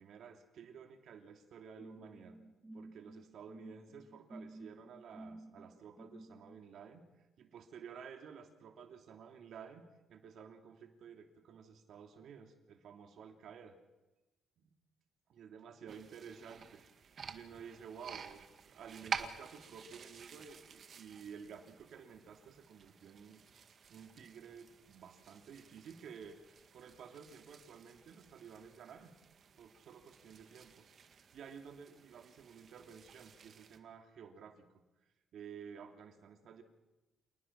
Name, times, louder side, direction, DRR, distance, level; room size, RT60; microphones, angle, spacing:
voice 1, 0.0-2.4 2.7-7.0 7.4-9.8 10.1-13.8 14.6-14.8 15.3-16.8 17.3-23.4 23.9-29.1 29.6-34.7 35.3-36.6, right 7 dB, 70° right, 5 dB, 3.0 m, -53 dB
sound 1, 1.8-6.6, right 1 dB, 10° right, 3.5 m, -53 dB
sound 2, 15.9-33.8, right 6 dB, 55° right, 1.8 m, -50 dB
27.5 x 19.5 x 5.9 m, 1.1 s
cardioid pair, 90°, 0 cm